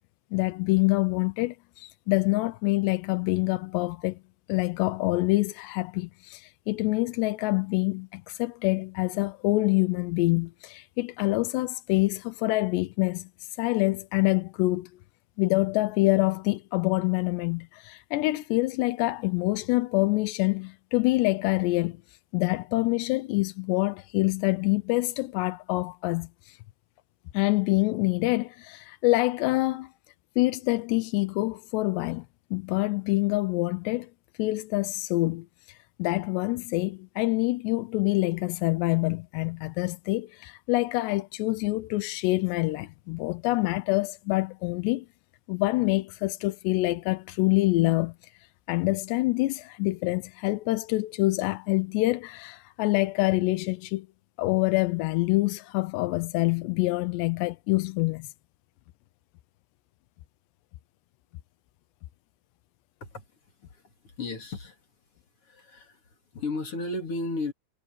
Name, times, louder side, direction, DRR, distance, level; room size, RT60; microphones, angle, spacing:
voice 1, 0.3-4.2 4.5-14.9 15.4-22.0 22.3-26.6 27.3-29.9 30.4-32.3 32.5-34.1 34.4-45.1 45.5-48.3 48.7-54.1 54.4-58.3, left 21 dB, 90° left, 2.9 m, -26 dB
voice 2, 63.7-64.8 65.4-66.0 66.3-67.5, left 2 dB, 40° left, 3.0 m, -34 dB
omnidirectional pair, 4.8 m